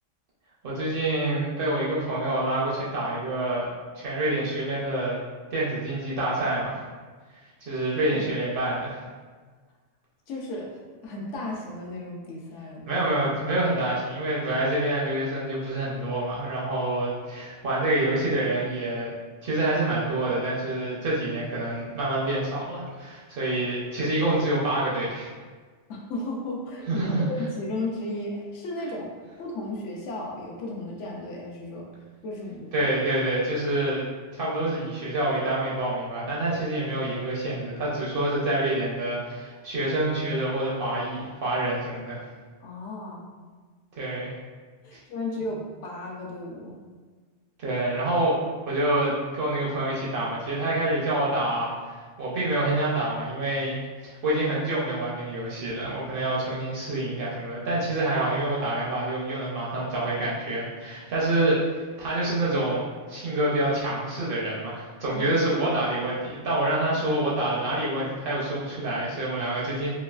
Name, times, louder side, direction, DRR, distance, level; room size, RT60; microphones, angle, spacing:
voice 1, 0.6-5.2 5.5-6.8 7.6-9.0 12.9-19.1 19.4-25.3 26.9-27.2 32.7-34.0 34.3-42.2 44.0-44.3 47.6-51.7 52.2-53.8 54.0-61.6 62.0-69.9, right 1 dB, 60° right, -6 dB, 0.6 m, -27 dB
voice 2, 10.3-13.0 25.9-29.1 29.4-31.9 32.2-32.9 42.6-43.2 44.0-44.1 44.8-46.7 65.1-65.2, left 2 dB, 75° left, -2 dB, 0.9 m, -34 dB
3.1 x 2.3 x 2.2 m, 1.5 s
omnidirectional pair, 1.2 m